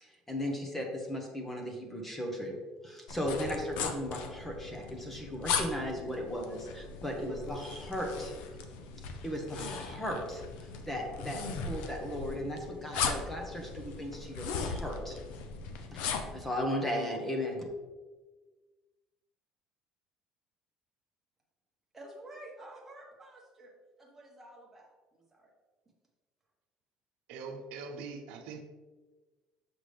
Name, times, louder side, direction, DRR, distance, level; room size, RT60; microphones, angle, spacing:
voice 1, 0.0-2.6 2.8-8.3 9.2-15.2 15.9-17.6, equal, 10° left, 0.9 m, -36 dB
sound 1, 3.1-16.4, left 5 dB, 85° left, 0.7 m, -38 dB
voice 2, 21.9-23.7 24.0-25.5, right 1 dB, 10° right, 1.4 m, -50 dB
voice 3, 27.3-28.6, right 4 dB, 80° right, 0.8 m, -42 dB
6.7 x 5.9 x 3.3 m
cardioid pair, 165°, 2 cm